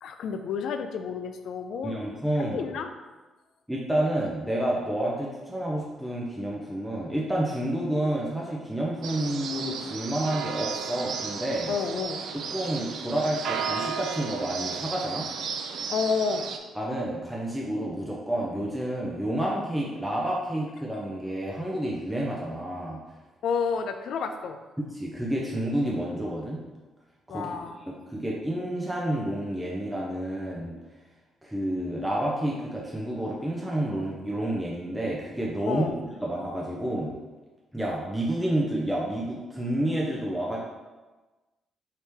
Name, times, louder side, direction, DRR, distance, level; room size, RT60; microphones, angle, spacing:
voice 1, 0.0-2.0 2.5-2.9 11.7-12.2 15.9-16.5 23.4-24.6 27.3-27.8 35.7-36.0, left 5 dB, 70° left, 8 dB, 0.3 m, -30 dB
voice 2, 1.8-2.6 3.7-11.7 12.5-15.3 16.8-23.0 24.8-26.6 27.3-27.5 27.8-30.8 31.4-35.9 36.2-37.1 37.7-40.6, right 1 dB, 5° right, -4 dB, 0.5 m, -29 dB
sound 1, 9.0-16.6, right 6 dB, 70° right, 0.4 m, -34 dB
4.7 x 2.9 x 3.4 m, 1.2 s
cardioid pair, 120°, 0 cm